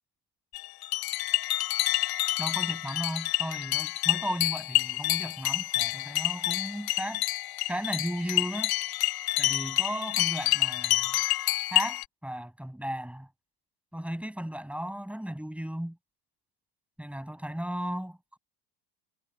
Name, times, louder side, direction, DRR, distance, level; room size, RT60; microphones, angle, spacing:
sound 1, 0.5-12.0, left 17 dB, 45° left, 1.3 m, -28 dB
voice 1, 2.4-7.2 7.7-8.7 9.4-11.2 11.7-13.3 13.9-16.0 17.0-18.4, equal, 5° right, 7.2 m, -35 dB
hypercardioid pair, 75°, 49 cm